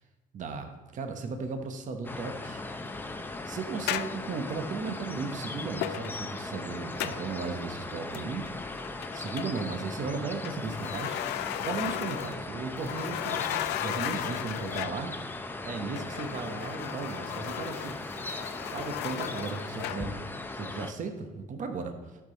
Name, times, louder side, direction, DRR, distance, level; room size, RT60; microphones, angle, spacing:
voice 1, 0.3-2.6 3.5-8.5 9.1-11.2 11.6-15.1 15.6-18.0 18.7-20.2 20.5-21.9, right 4 dB, 50° right, 6 dB, 1.1 m, -36 dB
sound 1, 2.0-20.9, left 2 dB, 10° left, 0.6 m, -38 dB
sound 2, 3.9-4.3 5.8-6.3 7.0-7.3 8.1-8.5 8.8-9.9 10.4-12.5 12.8-15.1 16.0-20.1, left 12 dB, 85° left, 0.4 m, -35 dB
11.5 x 5.9 x 4.0 m, 1.2 s
cardioid pair, 110°, 17 cm